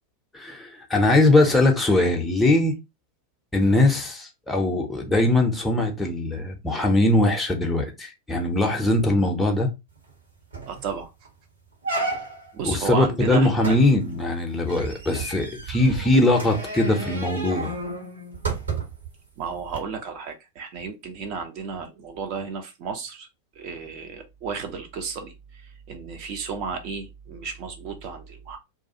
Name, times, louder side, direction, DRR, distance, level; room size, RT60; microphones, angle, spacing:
voice 1, 0.3-2.7 3.5-9.7 12.6-17.7, left 2 dB, 5° left, 0.6 m, -21 dB
sound 1, 10.1-10.2 10.5-10.8 11.2-11.3 11.8-12.6 13.6-19.1 19.7-19.8, right 3 dB, 70° right, 1.1 m, -32 dB
voice 2, 10.7-11.1 11.9-12.2 12.5-13.8 19.4-23.3 23.6-28.6, right 5 dB, 40° right, 0.5 m, -33 dB
2.4 x 2.3 x 2.7 m
figure-of-eight pair, 90°, 0 cm